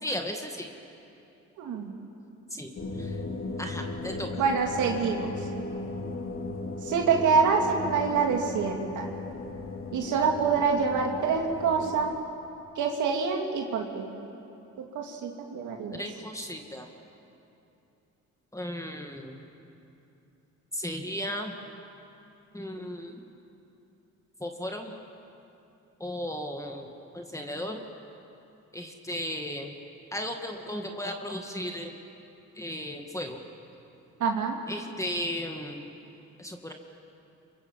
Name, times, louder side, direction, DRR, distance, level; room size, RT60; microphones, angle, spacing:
voice 1, 0.0-0.7 2.5-2.7 3.0-3.2 3.6-4.3 15.9-16.9 18.5-19.4 20.7-21.6 22.5-23.2 24.4-24.9 26.0-27.8 28.7-29.7 30.1-32.0 32.6-33.4 34.7-35.8 36.4-36.7, equal, 10° left, 2 dB, 2.2 m, -35 dB
voice 2, 1.6-1.9 4.4-5.3 6.8-9.1 9.9-12.1 12.8-14.1 14.8-16.0 34.2-34.6, right 5 dB, 80° right, 1 dB, 2.7 m, -26 dB
sound 1, 2.8-12.2, left 2 dB, 45° left, 2.7 m, -37 dB
27.5 x 24.5 x 7.7 m, 2.8 s
cardioid pair, 90°, 30 cm